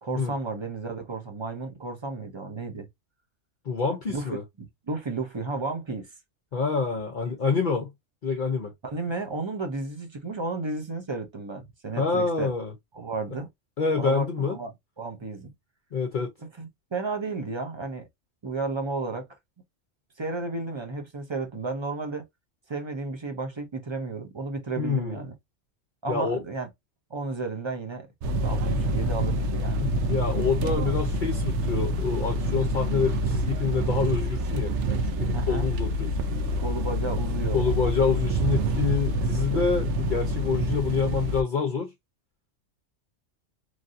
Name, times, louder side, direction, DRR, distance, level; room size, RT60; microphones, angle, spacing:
voice 1, 0.0-2.9 4.1-4.3 4.9-6.1 8.8-12.5 12.9-13.5 14.0-14.7 15.0-15.5 16.6-18.1 18.4-19.3 20.2-22.2 22.7-25.3 26.0-26.7 27.1-28.1 28.4-29.8 35.3-35.7 36.6-37.6, right 3 dB, 35° right, 0.4 m, -33 dB
voice 2, 3.6-4.4 6.5-7.9 8.2-8.7 12.0-12.7 13.8-14.6 15.9-16.3 24.8-25.2 26.1-26.4 29.8-36.1 37.5-41.9, left 5 dB, 50° left, 0.7 m, -27 dB
sound 1, 28.2-41.4, right 1 dB, 70° right, 0.8 m, -27 dB
3.2 x 2.6 x 2.5 m
omnidirectional pair, 1.3 m